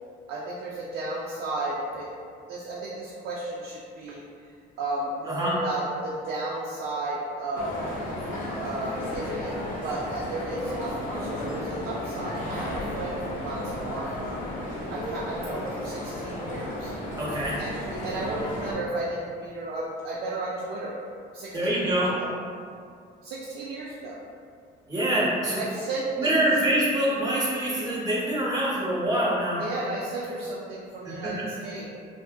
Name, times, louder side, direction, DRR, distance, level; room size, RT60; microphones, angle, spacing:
voice 1, 0.3-2.1 2.4-4.2 4.8-7.8 8.6-9.5 9.8-14.5 14.9-16.9 17.6-21.0 21.3-22.3 23.2-24.2 25.4-26.4 29.6-31.8, right 2 dB, 70° right, -5 dB, 0.4 m, -33 dB
sound 1, 7.5-18.7, left 1 dB, 55° left, 0.6 m, -34 dB
voice 2, 17.2-17.6 21.5-22.2 24.9-25.6 26.2-29.6 31.1-31.4, right 1 dB, 20° right, -7 dB, 0.8 m, -25 dB
2.6 x 2.5 x 2.2 m, 2.2 s
cardioid pair, 110°, 17 cm